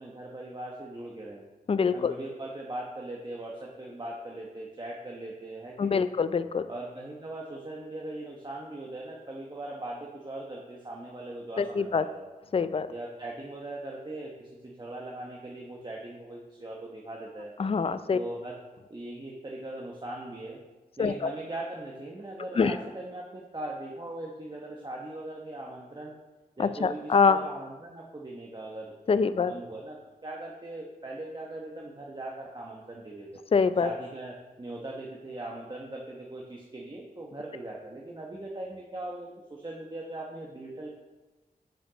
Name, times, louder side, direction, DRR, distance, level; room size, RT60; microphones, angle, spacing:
voice 1, 0.0-1.4 1.9-6.1 6.7-12.3 12.9-17.5 18.1-18.6 18.9-20.6 21.0-26.1 26.6-29.0 29.3-30.0 30.2-33.4 33.8-41.0, right 1 dB, 30° right, -2 dB, 1.0 m, -40 dB
voice 2, 1.7-2.1 5.8-6.6 11.6-12.0 12.5-12.9 17.6-18.2 21.0-21.3 22.6-22.7 26.6-27.4 29.1-29.5 33.5-33.9, left 5 dB, 35° left, 13 dB, 0.4 m, -24 dB
7.7 x 5.1 x 5.0 m, 1.2 s
cardioid pair, 60°, 16 cm